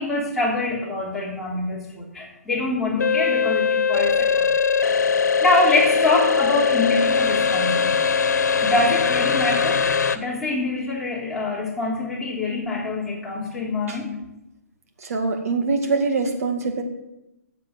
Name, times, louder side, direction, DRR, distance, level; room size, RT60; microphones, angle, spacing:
voice 1, 0.0-4.5 4.8-5.0 5.4-8.0 8.6-9.8 10.1-14.2, left 2 dB, ahead, -8 dB, 3.4 m, -25 dB
sound 1, 3.0-10.2, left 5 dB, 85° left, 1.2 m, -20 dB
voice 2, 15.0-16.8, right 3 dB, 60° right, 4 dB, 2.2 m, -23 dB
14.0 x 7.9 x 7.7 m, 0.92 s
hypercardioid pair, 165°, 9 cm